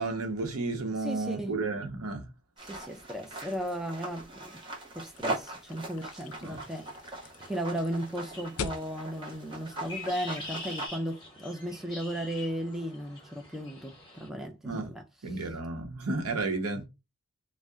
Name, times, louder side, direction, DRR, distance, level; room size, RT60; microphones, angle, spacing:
voice 1, 0.0-2.3 6.4-6.6 14.6-14.9 15.2-16.9, right 3 dB, 85° right, 0.7 m, -32 dB
voice 2, 1.0-1.6 2.6-4.6 4.9-15.0 15.3-15.5, equal, ahead, 0.3 m, -36 dB
sound 1, 2.6-10.9, right 2 dB, 20° right, 0.8 m, -41 dB
sound 2, 5.2-10.5, left 5 dB, 80° left, 0.4 m, -43 dB
sound 3, 6.5-14.3, left 2 dB, 20° left, 1.0 m, -46 dB
2.7 x 2.1 x 3.4 m
head